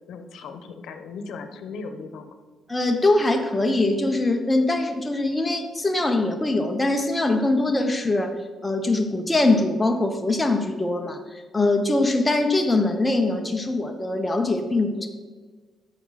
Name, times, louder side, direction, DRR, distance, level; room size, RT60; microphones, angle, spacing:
voice 1, 0.1-2.3, left 4 dB, 75° left, 8 dB, 1.0 m, -37 dB
voice 2, 2.7-8.4 8.6-15.1, left 2 dB, 15° left, 4 dB, 1.0 m, -22 dB
11.0 x 7.1 x 4.2 m, 1.4 s
cardioid pair, 90°, 0 cm